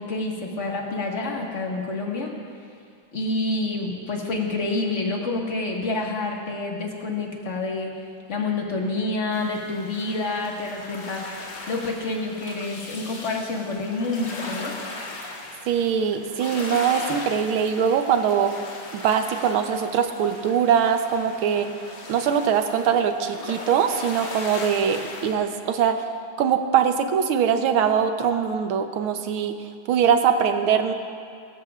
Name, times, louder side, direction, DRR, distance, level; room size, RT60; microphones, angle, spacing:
voice 1, 0.0-2.3 3.1-7.9 8.3-11.3 11.7-14.7, left 2 dB, 35° left, -1 dB, 1.7 m, -28 dB
sound 1, 9.3-25.3, left 2 dB, 50° left, 2.0 m, -38 dB
voice 2, 15.7-18.5 18.9-21.7 22.1-26.0 26.4-29.5 29.9-30.9, right 7 dB, 80° right, 7 dB, 1.6 m, -22 dB
22.0 x 13.5 x 2.4 m, 2.3 s
omnidirectional pair, 2.3 m